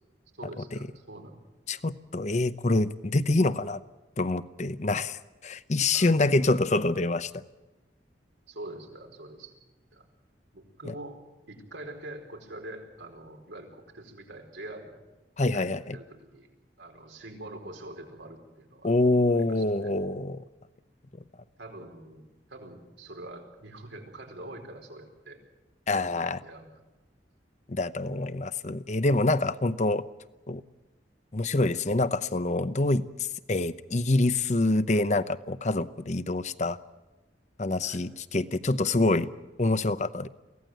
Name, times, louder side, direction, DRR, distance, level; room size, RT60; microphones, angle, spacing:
voice 1, 0.3-1.4 5.9-6.2 8.5-9.5 9.9-10.1 10.5-11.2 11.5-14.9 15.5-16.5 16.8-18.9 19.3-19.9 21.6-25.4 25.9-26.8 37.8-38.1, right 1 dB, 90° right, 3 dB, 4.6 m, -44 dB
voice 2, 1.7-3.8 4.2-7.4 10.8-10.9 15.4-16.0 18.8-20.4 25.9-26.4 27.7-30.0 30.5-30.6 31.3-36.8 37.6-39.3 39.6-40.3, left 2 dB, 40° left, 13 dB, 0.8 m, -26 dB
24.0 x 17.0 x 9.1 m, 1.1 s
head